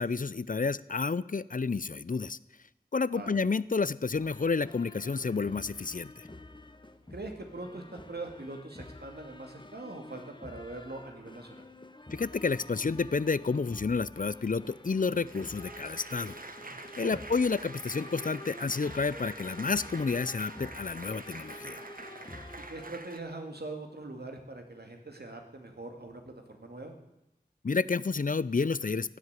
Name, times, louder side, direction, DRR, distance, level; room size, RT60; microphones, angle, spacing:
voice 1, 0.0-2.4 2.9-6.3 12.1-16.4 17.0-21.8 27.6-29.2, left 4 dB, 55° left, 19 dB, 0.5 m, -30 dB
sound 1, 4.1-22.9, left 1 dB, 30° left, 1.1 m, -49 dB
voice 2, 7.1-11.7 17.0-17.2 22.7-26.9, right 2 dB, 85° right, 4 dB, 2.3 m, -42 dB
Applause, 14.7-23.2, right 2 dB, 60° right, 1.3 m, -46 dB
16.5 x 7.9 x 9.6 m, 0.90 s
wide cardioid pair, 45°, 16 cm